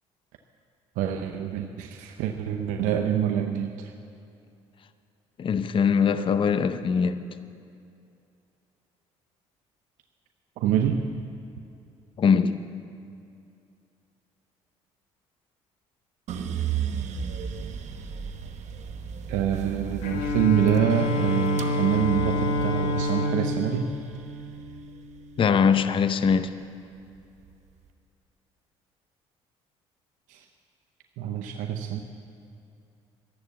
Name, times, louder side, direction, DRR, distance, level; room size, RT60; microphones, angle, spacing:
voice 1, 1.0-3.9 10.6-11.0 19.3-23.9 30.3-30.5 31.2-32.0, right 9 dB, 80° right, 4 dB, 0.8 m, -26 dB
voice 2, 5.4-7.2 12.2-12.6 25.4-26.5, left 6 dB, 40° left, 12 dB, 0.6 m, -22 dB
sound 1, 16.3-26.5 26.9-27.7, right 7 dB, 60° right, 1.1 m, -35 dB
Bowed string instrument, 20.0-25.3, left 1 dB, 75° left, 1.8 m, -28 dB
13.5 x 11.5 x 7.0 m, 2.5 s
supercardioid pair, 70°, 13 cm